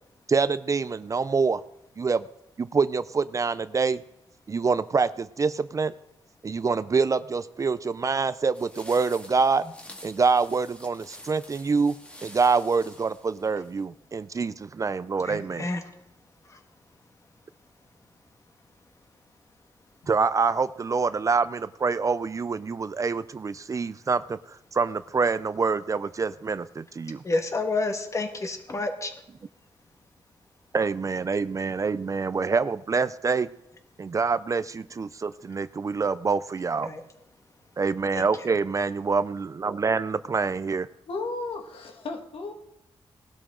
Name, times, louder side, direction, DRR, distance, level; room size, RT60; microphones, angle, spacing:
voice 1, 0.3-1.6 2.0-2.2 2.6-4.0 4.5-5.9 6.4-9.6 10.0-11.9 12.2-15.7 20.1-24.4 24.7-27.2 30.7-33.5 34.0-36.9 37.8-40.9, right 4 dB, 35° right, 0.4 m, -26 dB
sound 1, 8.5-13.8, left 1 dB, 10° left, 2.0 m, -48 dB
voice 2, 15.2-15.8 16.5-16.6 27.2-29.1 36.8-37.0 38.1-38.5, left 2 dB, 35° left, 1.7 m, -29 dB
voice 3, 41.1-42.5, left 3 dB, 75° left, 1.8 m, -34 dB
19.0 x 12.0 x 3.8 m
cardioid pair, 105°, 9 cm